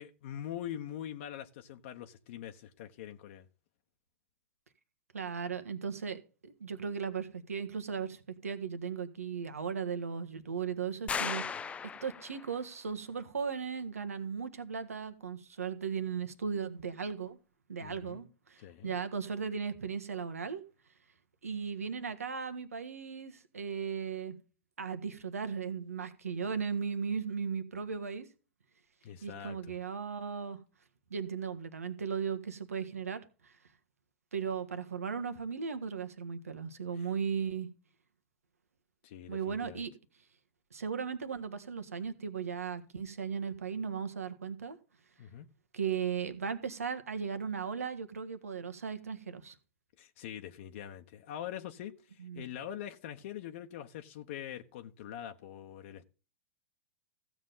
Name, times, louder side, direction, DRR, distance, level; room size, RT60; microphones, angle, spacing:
voice 1, 0.0-3.4 17.8-18.2 18.6-18.9 29.0-29.8 36.9-37.1 39.0-39.8 45.2-45.5 50.0-56.0, left 10 dB, 60° left, 1.0 m, -43 dB
voice 2, 5.1-11.7 12.0-17.4 17.7-20.6 21.4-24.4 24.8-28.3 29.2-30.6 31.1-33.6 34.3-37.7 39.3-39.9 40.7-44.8 45.7-49.5 52.2-52.5, right 6 dB, 85° right, 1.4 m, -37 dB
sound 1, 11.1-12.6, left 6 dB, 15° left, 0.4 m, -36 dB
15.0 x 7.3 x 3.9 m
hypercardioid pair, 105°, 8 cm